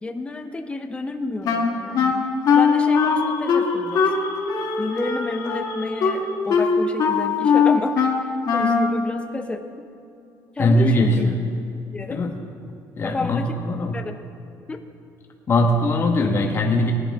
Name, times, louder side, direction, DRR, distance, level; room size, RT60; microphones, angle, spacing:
voice 1, 0.0-4.0 4.8-9.9 10.6-11.3 11.9-12.2 13.0-13.6 13.9-14.2 14.7-14.8, left 2 dB, 15° left, 6 dB, 0.7 m, -30 dB
Wind instrument woodwind instrument, 1.4-9.0, left 5 dB, 60° left, 1.4 m, -20 dB
sound 1, 2.5-6.6, left 7 dB, 85° left, 1.4 m, -37 dB
voice 2, 10.6-11.4 12.1-12.3 13.0-14.0 15.5-16.9, left 1 dB, 35° left, 2 dB, 1.3 m, -20 dB
17.5 x 11.0 x 3.6 m, 2.6 s
cardioid pair, 120°, 7 cm